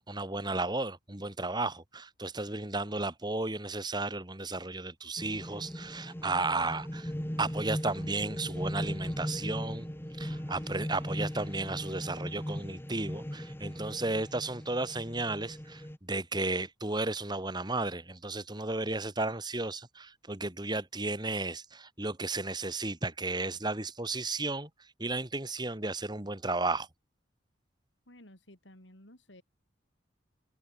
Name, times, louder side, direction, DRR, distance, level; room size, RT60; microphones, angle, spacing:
voice 1, 0.0-7.1 7.4-9.9 10.2-24.7 25.0-26.9, right 2 dB, 25° right, 2.6 m, -34 dB
sound 1, 5.2-16.0, equal, 10° left, 1.5 m, -38 dB
voice 2, 28.1-29.4, left 1 dB, 75° left, 7.9 m, -54 dB
head